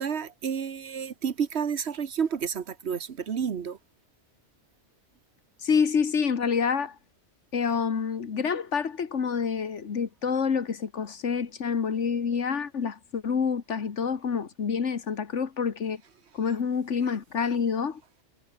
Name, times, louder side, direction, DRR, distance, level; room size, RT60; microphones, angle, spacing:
voice 1, 0.0-3.8, right 7 dB, 65° right, 1.4 m, -30 dB
voice 2, 5.6-7.0 7.5-16.0 16.3-18.0, left 6 dB, 75° left, 1.8 m, -27 dB
omnidirectional pair, 1.2 m